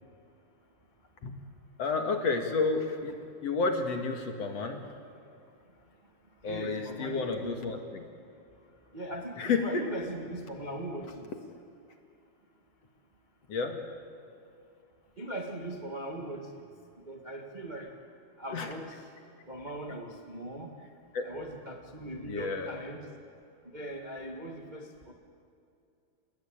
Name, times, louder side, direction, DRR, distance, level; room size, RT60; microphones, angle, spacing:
voice 1, 1.8-3.2 3.4-4.8 6.4-8.0 9.4-9.8 13.5-13.8 18.5-18.7 21.1-21.3 22.3-22.8, left 4 dB, 50° left, 4 dB, 2.5 m, -31 dB
voice 2, 6.4-7.8 8.9-11.3 15.2-16.6 17.0-17.9 18.4-19.1 19.5-20.7 21.2-23.1 23.7-25.1, right 1 dB, 45° right, 2 dB, 0.6 m, -40 dB
30.0 x 20.5 x 8.8 m, 2.5 s
omnidirectional pair, 4.5 m